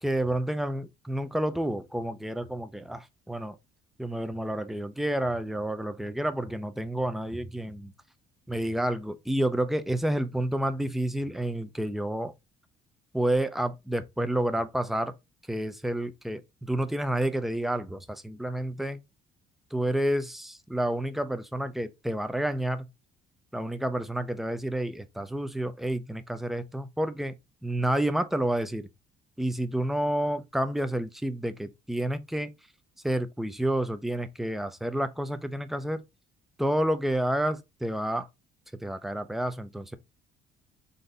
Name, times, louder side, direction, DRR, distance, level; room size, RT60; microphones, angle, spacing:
voice 1, 0.0-3.6 4.0-7.9 8.5-12.3 13.1-15.1 15.5-19.0 19.7-22.9 23.5-27.4 27.6-28.9 29.4-32.5 33.0-36.0 36.6-38.3 38.8-40.0, right 1 dB, ahead, 0.5 m, -29 dB
4.0 x 2.6 x 3.3 m
cardioid pair, 110°, 17 cm